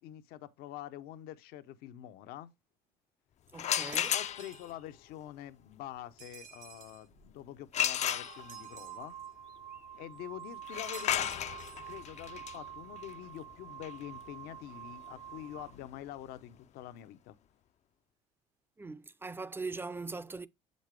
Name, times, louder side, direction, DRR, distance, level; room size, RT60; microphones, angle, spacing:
voice 1, 0.0-2.5 4.1-9.2 10.0-11.4 11.9-17.4, left 12 dB, 70° left, 0.7 m, -46 dB
sound 1, 3.5-4.7 7.7-8.8 10.6-16.3, left 10 dB, 45° left, 0.4 m, -35 dB
voice 2, 3.5-4.2 18.8-20.5, right 3 dB, 15° right, 0.5 m, -40 dB
sound 2, 3.8-4.7 6.2-7.1 8.1-9.3 10.9-11.9, right 7 dB, 60° right, 1.4 m, -52 dB
sound 3, 7.1-7.3 8.1-15.8, right 10 dB, 80° right, 1.3 m, -48 dB
7.2 x 5.3 x 3.3 m
supercardioid pair, 80°, 17 cm